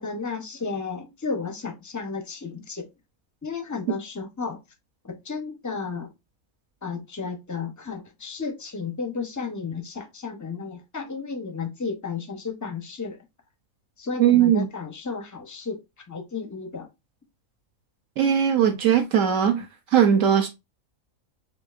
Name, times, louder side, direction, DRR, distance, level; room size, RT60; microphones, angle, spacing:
voice 1, 0.0-2.9 3.4-4.6 5.0-6.1 6.8-13.2 14.0-15.8 16.1-16.9, left 5 dB, 25° left, 0.4 m, -33 dB
voice 2, 14.2-14.7 18.2-19.7 19.9-20.5, right 9 dB, 70° right, 1.0 m, -19 dB
6.3 x 2.5 x 2.4 m
omnidirectional pair, 1.5 m